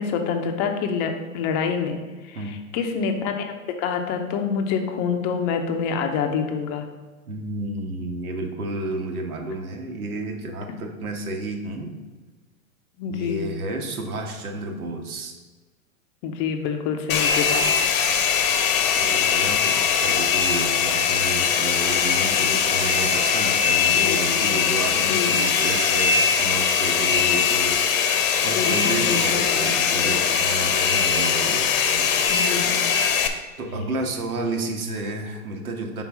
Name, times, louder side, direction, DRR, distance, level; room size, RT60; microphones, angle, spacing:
voice 1, 0.0-6.9 13.0-13.4 16.2-17.7 21.5-21.7 23.8-24.6 25.1-25.4 27.2-27.5 28.5-29.6 32.3-32.8, left 6 dB, 25° left, 5 dB, 0.6 m, -27 dB
voice 2, 7.3-11.9 13.1-15.3 18.9-27.8 28.4-31.7 32.0-32.1 33.6-36.0, right 2 dB, 85° right, 3 dB, 1.4 m, -31 dB
Domestic sounds home sounds, 17.1-33.3, left 7 dB, 70° left, 0.9 m, -21 dB
5.5 x 4.0 x 5.9 m, 1.3 s
hypercardioid pair, 140°, 43 cm